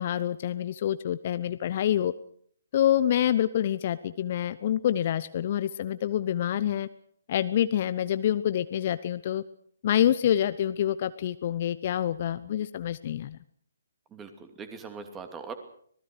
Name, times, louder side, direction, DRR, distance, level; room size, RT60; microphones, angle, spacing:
voice 1, 0.0-2.1 2.7-6.9 7.3-9.4 9.8-13.4, left 10 dB, 40° left, 14 dB, 0.8 m, -27 dB
voice 2, 14.1-15.5, right 5 dB, 15° right, 7 dB, 2.8 m, -41 dB
26.0 x 19.5 x 6.3 m, 0.62 s
figure-of-eight pair, 135°, 0 cm